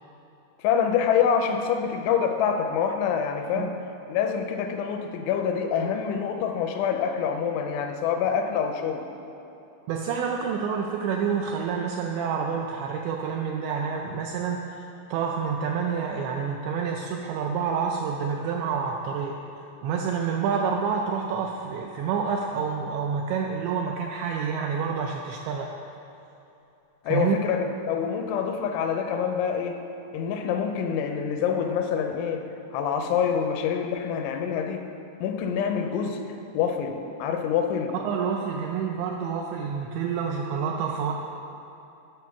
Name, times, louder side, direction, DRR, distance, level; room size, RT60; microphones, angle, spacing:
voice 1, 0.6-3.7 4.1-9.1 27.0-29.8 30.1-32.5 32.7-34.9 35.2-38.0, left 7 dB, 85° left, 6 dB, 2.9 m, -26 dB
voice 2, 9.9-19.3 19.8-25.7 27.1-27.4 38.0-41.1, right 6 dB, 85° right, 1 dB, 2.5 m, -28 dB
9.3 x 6.2 x 5.8 m, 2.9 s
omnidirectional pair, 5.5 m